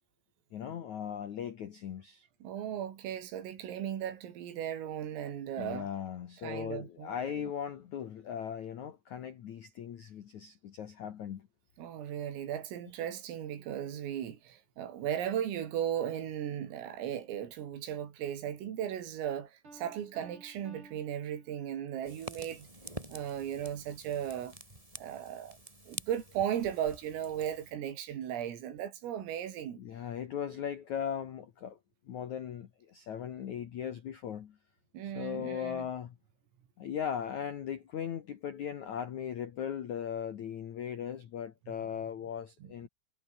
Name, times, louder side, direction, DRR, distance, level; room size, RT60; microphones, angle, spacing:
voice 1, 0.5-2.3 5.6-11.5 29.8-31.8 32.0-34.6 35.0-36.2 36.8-42.9, left 8 dB, 75° left, 1.7 m, -38 dB
voice 2, 2.4-5.9 6.4-7.5 11.8-22.7 23.1-24.6 25.0-25.6 25.9-29.8 34.9-35.9 42.6-42.7, right 10 dB, 80° right, 5.6 m, -36 dB
Piano, 19.6-22.1, right 2 dB, 25° right, 7.7 m, -56 dB
Fire, 22.0-27.7, right 1 dB, 10° right, 3.3 m, -48 dB
omnidirectional pair, 5.9 m